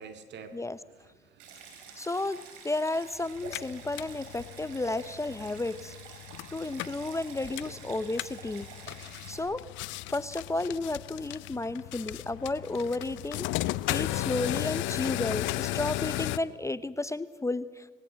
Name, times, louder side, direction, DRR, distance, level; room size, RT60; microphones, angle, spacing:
voice 1, 0.0-2.1 9.1-9.3 12.8-12.9 13.9-14.1 16.1-16.2, right 5 dB, 65° right, 9 dB, 2.5 m, -50 dB
Stream, 1.4-9.4, right 5 dB, 85° right, 4.3 m, -48 dB
voice 2, 2.0-5.9 6.5-8.7 9.3-9.7 10.1-13.5 13.9-17.9, left 2 dB, 15° left, 16 dB, 0.7 m, -32 dB
sound 1, 3.3-16.4, left 17 dB, 75° left, 0.6 m, -35 dB
21.0 x 18.5 x 7.5 m, 1.3 s
supercardioid pair, 70°, 20 cm